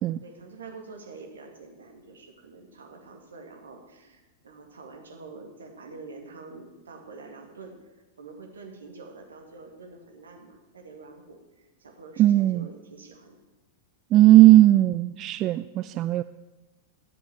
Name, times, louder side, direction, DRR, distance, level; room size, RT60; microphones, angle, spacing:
voice 1, 0.2-7.9 8.2-13.4, right 3 dB, 70° right, 2 dB, 2.2 m, -46 dB
voice 2, 12.2-12.7 14.1-16.2, right 15 dB, 35° right, 14 dB, 0.3 m, -17 dB
12.5 x 7.8 x 7.2 m, 1.1 s
figure-of-eight pair, 95°, 0 cm